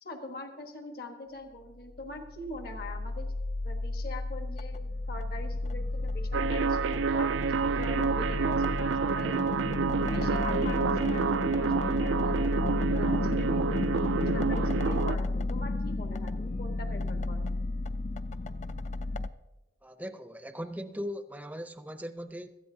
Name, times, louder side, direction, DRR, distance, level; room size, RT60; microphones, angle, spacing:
voice 1, 0.0-3.3 3.6-9.4 10.1-12.6 12.9-17.5, left 2 dB, 55° left, 4 dB, 1.3 m, -43 dB
sound 1, 1.9-19.3, left 2 dB, 35° left, 0.4 m, -32 dB
sound 2, 6.3-15.2, right 5 dB, 85° right, 0.3 m, -29 dB
voice 2, 19.8-22.5, equal, 10° right, 9 dB, 0.6 m, -39 dB
18.0 x 13.5 x 2.8 m, 1.1 s
head